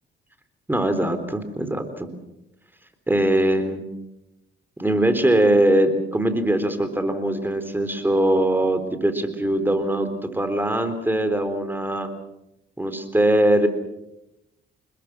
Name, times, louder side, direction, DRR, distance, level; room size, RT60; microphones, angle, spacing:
voice 1, 0.7-2.1 3.1-3.8 4.8-12.1 12.8-13.7, right 1 dB, 10° right, 9 dB, 3.9 m, -21 dB
29.0 x 21.0 x 6.2 m, 0.87 s
cardioid pair, 90°, 20 cm